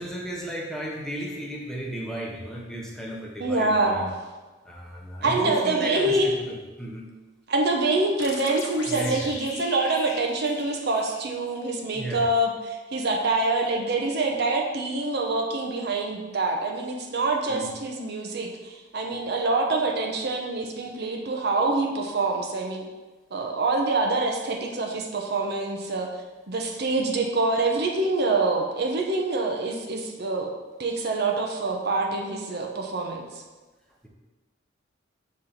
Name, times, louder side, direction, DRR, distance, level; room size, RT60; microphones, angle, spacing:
voice 1, 0.0-4.0 4.6-7.1 8.9-9.3 11.9-12.3 17.5-17.8 19.1-19.2, right 1 dB, 5° left, -2 dB, 0.9 m, -34 dB
voice 2, 3.4-4.2 5.2-6.3 7.5-22.8 23.3-26.2 26.5-30.5 30.8-33.4, right 2 dB, 60° right, 2 dB, 0.7 m, -26 dB
sound 1, 8.2-11.7, left 4 dB, 85° left, 0.9 m, -39 dB
5.7 x 4.3 x 5.1 m, 1.2 s
head